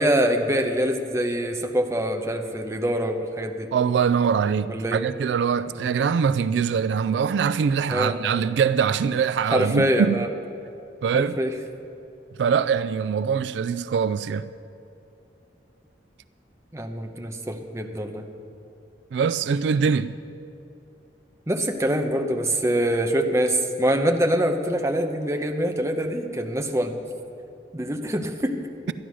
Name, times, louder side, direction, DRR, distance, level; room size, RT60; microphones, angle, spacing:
voice 1, 0.0-3.7 4.7-5.0 5.8-5.9 7.9-8.2 9.5-10.3 11.1-11.5 16.7-18.3 21.5-27.0 27.7-28.6, equal, 15° right, 0.8 m, -24 dB
voice 2, 3.7-10.2 11.0-11.4 12.4-14.5 19.1-20.1, right 6 dB, 75° right, 0.3 m, -23 dB
12.5 x 9.9 x 6.2 m
head